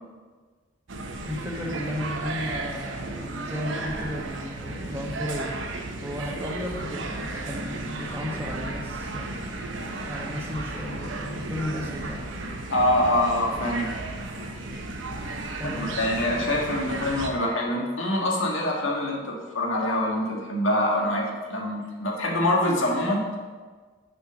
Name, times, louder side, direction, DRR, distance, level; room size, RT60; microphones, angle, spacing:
sound 1, 0.9-17.3, right 2 dB, 80° right, 1.0 m, -34 dB
voice 1, 1.2-5.5 6.0-9.3 10.1-12.4 15.6-16.0, left 1 dB, 10° right, -2 dB, 1.1 m, -34 dB
voice 2, 12.7-13.9 14.3-14.4 15.6-23.3, left 1 dB, 90° left, -1 dB, 1.7 m, -25 dB
6.9 x 5.5 x 6.2 m, 1.4 s
head